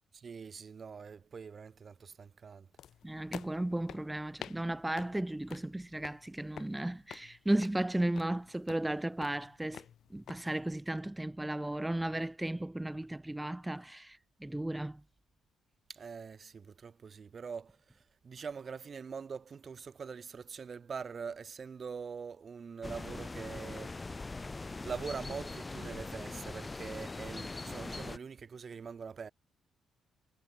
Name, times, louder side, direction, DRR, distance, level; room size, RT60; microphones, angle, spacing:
voice 1, 0.1-2.7 15.9-24.0 24.8-29.3, right 6 dB, 45° right, 2.9 m, -44 dB
sound 1, 2.8-10.4, left 10 dB, 65° left, 1.6 m, -50 dB
voice 2, 3.0-9.8 10.1-15.0, right 1 dB, 10° right, 1.4 m, -35 dB
sound 2, 22.8-28.2, left 3 dB, 20° left, 1.5 m, -41 dB
cardioid pair, 90°, 0 cm